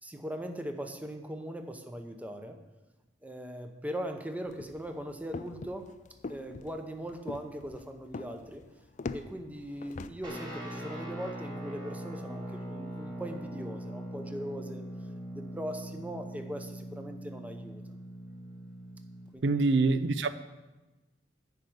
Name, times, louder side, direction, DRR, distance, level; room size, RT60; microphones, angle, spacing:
voice 1, 0.0-2.6 3.2-5.9 6.3-8.6 9.1-14.8 15.3-17.8 19.3-19.5, equal, 10° right, 0.7 m, -40 dB
sound 1, 4.5-10.1, left 3 dB, 45° left, 0.4 m, -43 dB
Guitar, 10.2-19.3, equal, 25° right, 2.1 m, -41 dB
voice 2, 19.4-20.3, right 3 dB, 85° right, 0.5 m, -25 dB
10.5 x 5.0 x 7.9 m
head